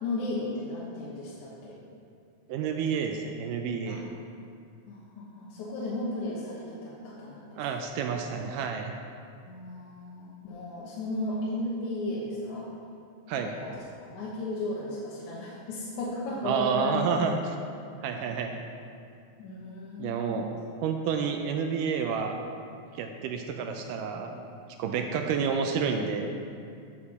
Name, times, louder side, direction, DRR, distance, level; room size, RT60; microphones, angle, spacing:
voice 1, 0.0-1.8 3.9-4.0 4.9-7.6 9.4-12.7 13.4-17.1 19.4-20.5 24.9-25.1, left 2 dB, 70° left, -6 dB, 2.2 m, -35 dB
voice 2, 2.5-4.0 7.6-8.9 13.3-13.5 16.4-17.6 18.0-18.6 20.0-22.4 23.0-24.5 24.8-26.3, right 6 dB, 80° right, 4 dB, 1.9 m, -29 dB
11.0 x 6.9 x 4.1 m, 2.4 s
omnidirectional pair, 4.2 m